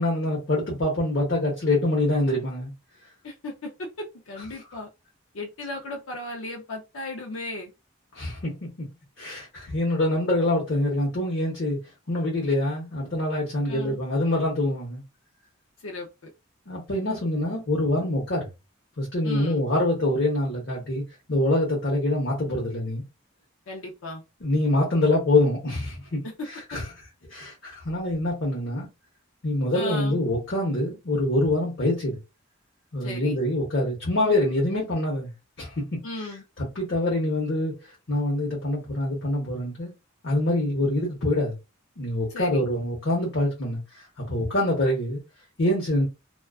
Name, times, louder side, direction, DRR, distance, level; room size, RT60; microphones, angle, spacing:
voice 1, 0.0-2.7 8.1-8.6 9.2-11.8 12.1-15.0 16.7-18.5 19.0-21.0 21.3-23.0 24.4-26.2 26.7-26.8 27.3-28.9 29.4-32.2 32.9-35.3 35.6-36.0 36.6-37.7 38.1-39.9 40.2-41.6 42.0-45.2 45.6-46.0, left 1 dB, 60° left, 0.8 m, -25 dB
voice 2, 3.2-4.9 5.3-7.7 13.7-14.0 15.8-16.3 19.2-19.6 23.7-24.2 29.7-30.2 33.0-33.4 36.0-36.4 42.3-42.6, left 2 dB, 80° left, 0.5 m, -36 dB
2.3 x 2.3 x 2.3 m
head